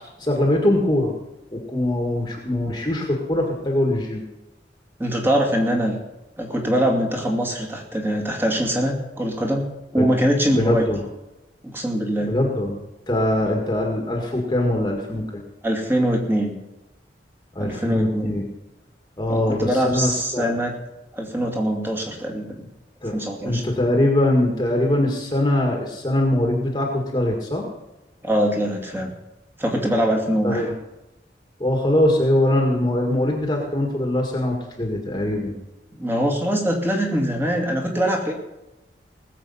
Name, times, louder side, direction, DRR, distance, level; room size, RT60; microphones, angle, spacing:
voice 1, 0.2-1.1 1.5-4.2 10.0-10.1 10.5-11.0 12.2-12.8 13.1-15.4 17.6-18.4 19.2-20.5 23.0-23.2 23.4-27.7 30.4-30.8 31.6-35.5, left 1 dB, 25° left, 1 dB, 1.9 m, -22 dB
voice 2, 5.0-6.0 6.4-9.7 9.9-10.9 11.6-12.4 15.6-16.6 17.6-18.3 19.3-20.7 21.1-22.5 23.1-23.6 28.2-29.1 29.6-30.7 36.0-38.3, equal, 15° right, 1 dB, 2.4 m, -23 dB
19.5 x 7.6 x 5.6 m, 0.97 s
head